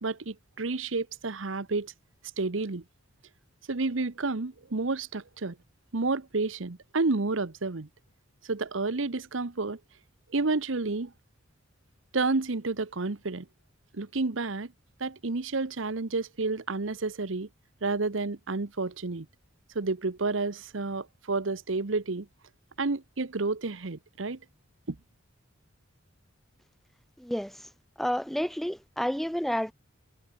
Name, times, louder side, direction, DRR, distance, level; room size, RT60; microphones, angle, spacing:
voice 1, 0.0-1.9 2.4-2.8 3.7-5.6 5.9-7.9 8.4-9.8 10.3-11.1 12.1-13.5 13.9-14.7 15.0-17.5 17.8-19.3 19.7-22.3 22.8-24.4 24.9-25.0, right 3 dB, 75° right, 1.0 m, -30 dB
voice 2, 27.2-27.7 28.0-29.7, equal, ahead, 0.3 m, -30 dB
head